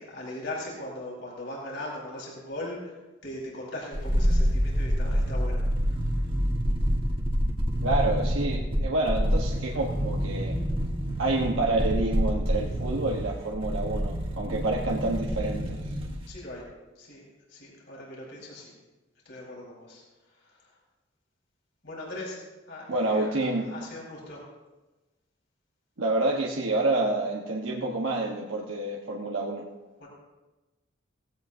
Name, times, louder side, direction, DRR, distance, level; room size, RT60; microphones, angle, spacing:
voice 1, 0.0-2.9 3.2-6.0 16.3-16.6 17.0-17.2 17.5-18.7 19.2-20.0 21.8-22.4 22.7-23.4 23.7-24.4 30.0-30.1, left 1 dB, 60° left, -4 dB, 4.5 m, -39 dB
sound 1, 3.9-16.3 16.6-16.7, equal, 25° right, 1.5 m, -27 dB
voice 2, 7.8-10.6 11.2-15.9 22.9-23.7 26.0-29.6, right 2 dB, 90° right, -2 dB, 1.2 m, -28 dB
17.5 x 16.5 x 2.7 m, 1.1 s
head